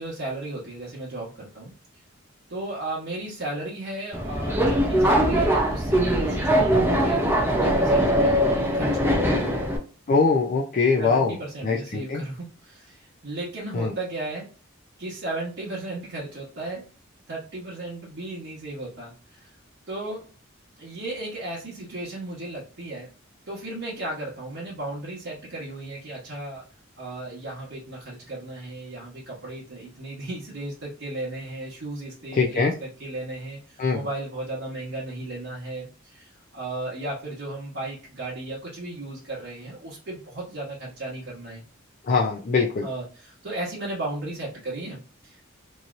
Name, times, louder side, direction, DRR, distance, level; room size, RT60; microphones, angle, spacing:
voice 1, 0.0-1.7 2.5-9.8 11.0-14.5 15.0-16.8 17.3-19.5 19.9-20.3 20.8-23.1 23.5-26.6 27.0-41.6 42.8-45.4, right 2 dB, 60° right, -7 dB, 1.0 m, -35 dB
Subway metro underground, 4.1-9.8, equal, 10° right, 0.5 m, -21 dB
voice 2, 10.1-11.4 11.6-12.2 13.7-13.9 32.3-32.7 33.8-34.0 42.0-42.9, left 4 dB, 40° left, -1 dB, 0.4 m, -22 dB
3.0 x 2.7 x 2.4 m, 0.35 s
head